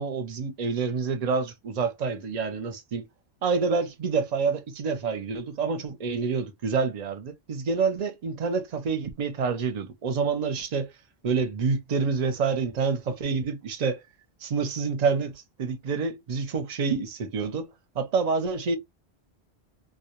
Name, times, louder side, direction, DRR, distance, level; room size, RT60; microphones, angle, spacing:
voice 1, 0.0-3.1 3.4-10.9 11.2-14.0 14.4-18.8, right 5 dB, 50° right, 0.6 m, -27 dB
2.2 x 2.1 x 2.8 m
omnidirectional pair, 1.1 m